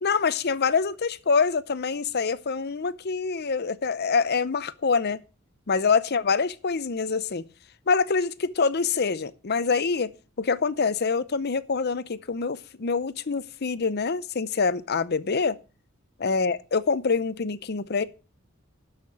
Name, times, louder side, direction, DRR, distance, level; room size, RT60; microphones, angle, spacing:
voice 1, 0.0-5.2 5.7-7.4 7.9-10.1 10.4-15.6 16.2-18.0, left 5 dB, 50° left, 0.7 m, -25 dB
12.5 x 5.8 x 6.2 m
head